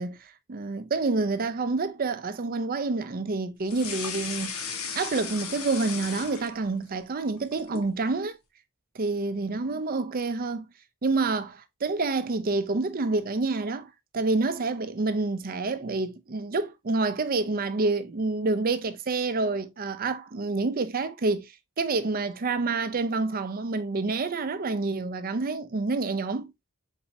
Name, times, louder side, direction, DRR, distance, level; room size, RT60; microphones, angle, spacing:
voice 1, 0.0-4.5 4.9-8.4 9.0-10.7 11.0-13.9 14.1-26.5, right 3 dB, 40° right, 0.5 m, -28 dB
sound 1, 3.7-6.9 7.2-7.9, left 6 dB, 85° left, 1.1 m, -36 dB
4.6 x 4.1 x 2.7 m
head